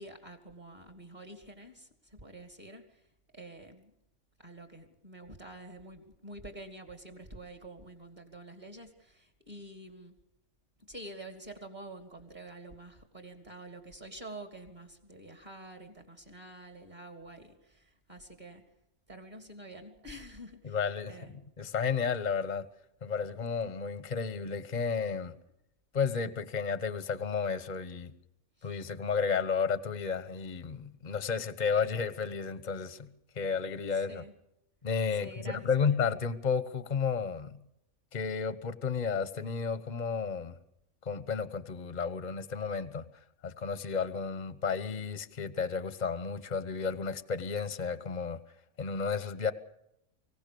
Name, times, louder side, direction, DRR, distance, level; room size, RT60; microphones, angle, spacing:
voice 1, 0.0-3.1 3.3-3.9 4.4-10.2 10.9-18.6 19.1-21.4 28.6-28.8 33.9-34.4 35.1-36.0, right 1 dB, 30° right, 5 dB, 2.7 m, -48 dB
voice 2, 20.6-21.1 21.6-22.7 23.0-25.3 25.9-28.1 28.6-33.1 33.4-34.2 34.8-37.6 38.1-40.5 41.0-43.0 43.4-48.4 48.8-49.5, left 5 dB, 35° left, 13 dB, 1.2 m, -32 dB
25.5 x 16.5 x 6.9 m, 0.81 s
omnidirectional pair, 1.5 m